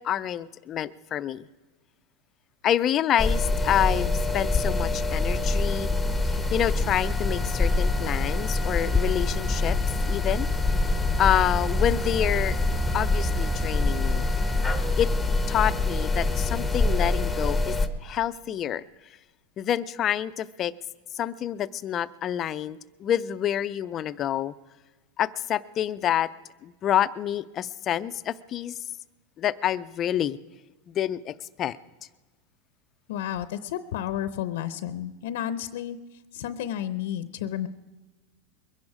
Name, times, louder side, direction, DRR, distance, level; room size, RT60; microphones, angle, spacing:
voice 1, 0.0-1.5 2.6-5.9 6.2-9.8 10.1-10.5 11.2-12.6 12.9-14.3 15.0-15.1 15.5-17.8 18.0-18.8 19.6-20.7 21.1-24.5 25.2-26.3 26.6-28.8 29.4-30.4 30.9-31.8, left 10 dB, 30° left, 15 dB, 0.5 m, -27 dB
sound 1, 3.2-17.9, left 2 dB, 5° left, 0.9 m, -25 dB
voice 2, 33.1-36.0 36.3-37.7, left 11 dB, 75° left, 14 dB, 0.7 m, -31 dB
22.0 x 10.5 x 4.9 m, 1.2 s
supercardioid pair, 140°, 0 cm